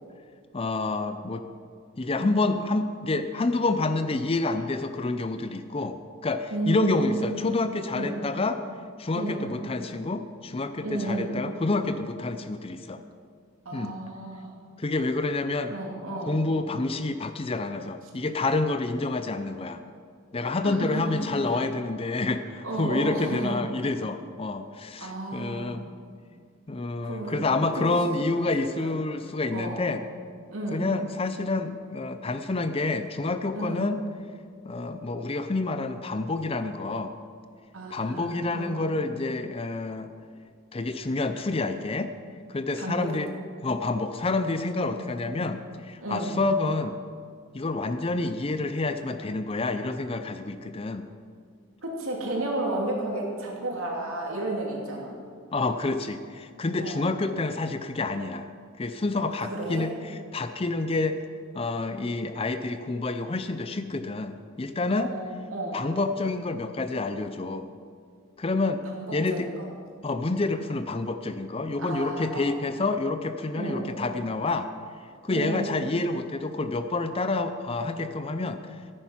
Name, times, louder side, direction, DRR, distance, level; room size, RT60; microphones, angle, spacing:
voice 1, 0.5-1.5 2.0-8.6 9.0-13.0 13.7-13.9 14.8-15.7 16.3-19.8 20.3-25.8 26.7-30.0 30.7-34.0 34.6-37.1 37.9-40.1 40.7-42.1 42.5-43.3 43.6-47.0 47.5-51.1 55.5-58.5 58.8-61.3 61.5-65.1 65.7-67.7 68.4-68.8 69.1-69.5 70.0-74.7 75.2-78.8, left 3 dB, 25° left, 9 dB, 0.5 m, -28 dB
voice 2, 6.5-7.2 7.9-8.2 9.1-9.5 10.8-11.3 13.6-14.5 15.7-16.4 20.6-21.6 22.6-23.6 25.0-25.7 27.0-28.9 29.5-29.9 30.5-30.9 33.5-33.9 37.7-38.8 42.8-43.2 44.8-45.0 46.0-46.4 51.8-55.1 56.8-57.1 59.4-59.9 64.9-65.8 68.9-69.7 71.8-72.5 73.5-73.9 75.3-75.8, right 1 dB, 70° right, -1 dB, 2.7 m, -33 dB
14.0 x 9.9 x 5.7 m, 2.1 s
head